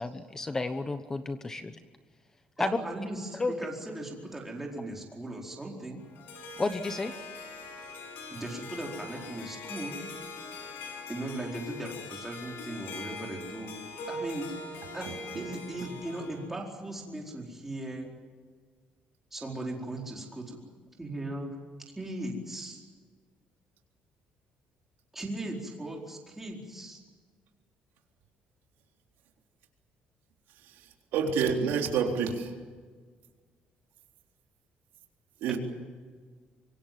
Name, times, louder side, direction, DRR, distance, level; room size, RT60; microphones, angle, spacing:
voice 1, 0.0-1.8 2.6-2.8 3.3-3.6 6.6-7.1, left 3 dB, 15° left, 10 dB, 1.0 m, -31 dB
voice 2, 2.6-6.0 8.3-10.0 11.1-13.8 14.1-14.5 14.9-18.1 19.3-20.6 21.0-21.5 21.9-22.8 25.1-27.0 35.5-35.6, right 1 dB, 10° right, -1 dB, 4.6 m, -38 dB
Harp, 6.0-16.5, left 3 dB, 80° left, 6.4 m, -42 dB
voice 3, 31.1-32.5 35.4-35.6, right 6 dB, 90° right, 2 dB, 3.7 m, -28 dB
25.5 x 23.5 x 7.6 m, 1.5 s
cardioid pair, 170°, 3 cm